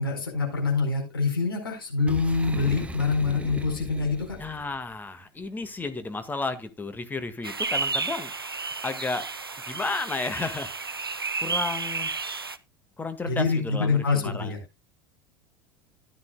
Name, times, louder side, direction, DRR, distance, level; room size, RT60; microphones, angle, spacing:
voice 1, 0.0-4.4 13.2-14.6, left 4 dB, 80° left, 2 dB, 4.5 m, -25 dB
Boom, 2.1-4.8, right 2 dB, 10° right, 1.2 m, -38 dB
voice 2, 4.4-8.3 8.8-9.3 9.7-10.7 11.1-12.1 13.0-14.5, left 3 dB, 15° left, 9 dB, 1.7 m, -32 dB
sound 1, 7.4-12.6, right 4 dB, 90° right, 0.6 m, -32 dB
14.0 x 10.5 x 2.2 m, 0.24 s
figure-of-eight pair, 75°, 12 cm